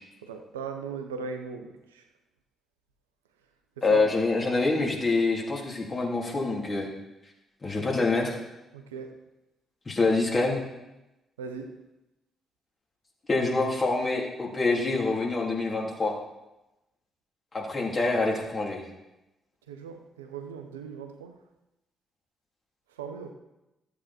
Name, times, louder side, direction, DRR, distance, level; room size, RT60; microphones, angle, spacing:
voice 1, 0.2-2.0 3.9-4.0 8.7-9.2 11.4-11.7 19.7-21.3 23.0-23.3, right 6 dB, 85° right, 6 dB, 0.9 m, -38 dB
voice 2, 3.8-6.9 7.6-8.4 9.8-10.6 13.3-16.1 17.5-18.8, left 3 dB, 35° left, -2 dB, 3.2 m, -26 dB
13.5 x 8.2 x 4.4 m, 0.96 s
hypercardioid pair, 45°, 0 cm